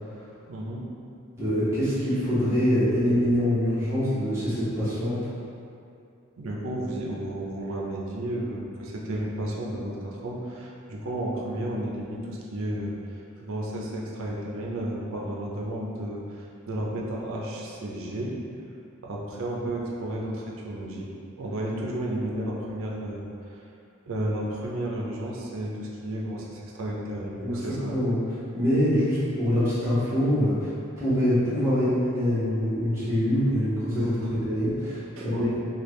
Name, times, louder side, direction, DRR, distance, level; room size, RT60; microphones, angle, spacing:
voice 1, 0.5-0.9 2.4-2.8 6.4-18.4 19.0-21.1 21.4-23.6 24.1-27.9 34.0-34.4 35.2-35.5, right 1 dB, 70° right, -3 dB, 0.5 m, -32 dB
voice 2, 1.3-5.2 27.4-27.6 27.9-28.2 28.5-34.1 34.4-35.5, equal, 15° right, -13 dB, 1.0 m, -24 dB
3.3 x 2.2 x 3.1 m, 2.5 s
head